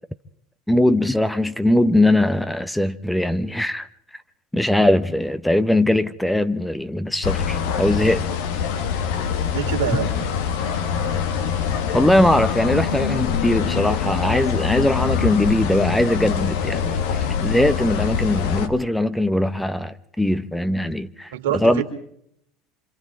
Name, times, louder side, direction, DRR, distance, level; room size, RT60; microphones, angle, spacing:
voice 1, 0.7-3.9 4.5-8.3 11.9-21.3 21.6-21.8, left 1 dB, 5° left, 0.9 m, -20 dB
sound 1, 7.2-18.7, left 7 dB, 70° left, 1.7 m, -24 dB
voice 2, 9.5-10.1 21.3-21.8, right 9 dB, 75° right, 3.2 m, -25 dB
27.0 x 26.5 x 3.7 m
hypercardioid pair, 75°, 0 cm